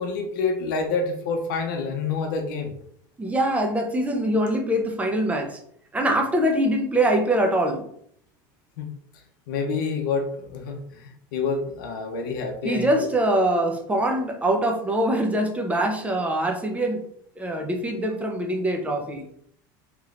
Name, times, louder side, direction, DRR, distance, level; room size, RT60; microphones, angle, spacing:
voice 1, 0.0-2.7 8.8-8.9 9.5-13.1, left 4 dB, 80° left, 3 dB, 0.6 m, -28 dB
voice 2, 3.2-5.6 5.9-7.8 12.6-17.0 17.4-19.3, right 1 dB, 15° right, 2 dB, 0.7 m, -23 dB
3.1 x 3.0 x 2.5 m, 0.67 s
supercardioid pair, 110°, 11 cm